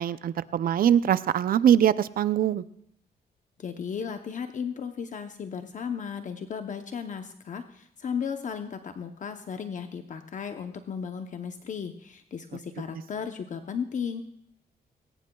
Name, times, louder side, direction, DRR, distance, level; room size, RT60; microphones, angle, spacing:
voice 1, 0.0-2.6, right 9 dB, 65° right, 15 dB, 0.5 m, -22 dB
voice 2, 3.6-14.3, left 6 dB, 50° left, 7 dB, 0.8 m, -35 dB
20.5 x 18.0 x 2.3 m, 0.71 s
cardioid pair, 120°, 16 cm